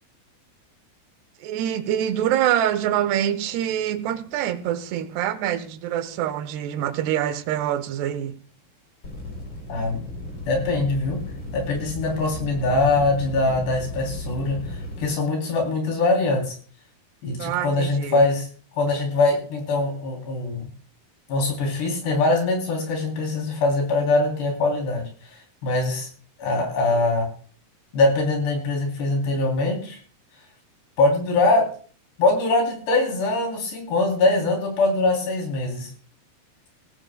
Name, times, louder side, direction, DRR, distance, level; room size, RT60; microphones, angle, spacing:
voice 1, 1.4-8.4 17.4-18.2, right 11 dB, 85° right, 2.9 m, -25 dB
sound 1, 9.0-15.0, left 1 dB, 30° left, 3.9 m, -35 dB
voice 2, 10.5-11.2 11.5-16.5 17.2-18.5 18.7-20.7 21.3-25.1 25.6-26.1 26.4-27.3 27.9-30.0 31.0-31.7 32.2-35.9, left 2 dB, 80° left, 5.6 m, -22 dB
19.5 x 16.5 x 2.3 m
omnidirectional pair, 4.7 m